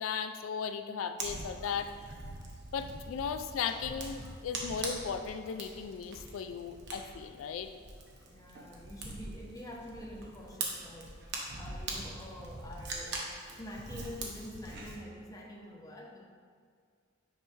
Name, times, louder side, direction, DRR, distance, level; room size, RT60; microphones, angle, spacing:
voice 1, 0.0-1.9 2.7-7.7, left 6 dB, 90° left, 8 dB, 0.3 m, -36 dB
Fire, 1.2-14.9, right 2 dB, 55° right, 1.0 m, -43 dB
voice 2, 8.2-13.2 13.6-16.2, left 1 dB, 20° left, 0 dB, 0.7 m, -47 dB
6.6 x 3.2 x 5.3 m, 2.1 s
head